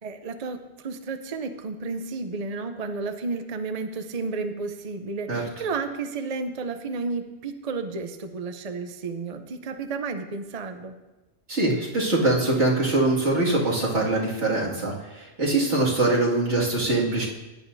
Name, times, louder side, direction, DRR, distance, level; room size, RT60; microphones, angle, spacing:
voice 1, 0.0-10.9, right 4 dB, 40° right, 7 dB, 0.7 m, -32 dB
voice 2, 11.5-17.3, right 2 dB, 85° right, -5 dB, 2.5 m, -23 dB
16.5 x 10.0 x 2.7 m, 1.0 s
omnidirectional pair, 1.1 m